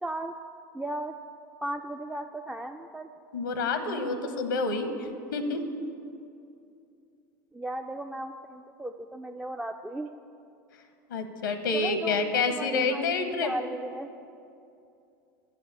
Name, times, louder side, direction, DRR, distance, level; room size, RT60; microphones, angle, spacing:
voice 1, 0.0-0.3 0.7-1.1 1.6-3.1 7.5-10.1 11.7-14.1, right 1 dB, 5° right, 4 dB, 0.3 m, -36 dB
voice 2, 3.3-5.6 11.1-13.5, left 3 dB, 90° left, 8 dB, 0.8 m, -28 dB
7.4 x 6.9 x 7.8 m, 2.6 s
hypercardioid pair, 95°, 10 cm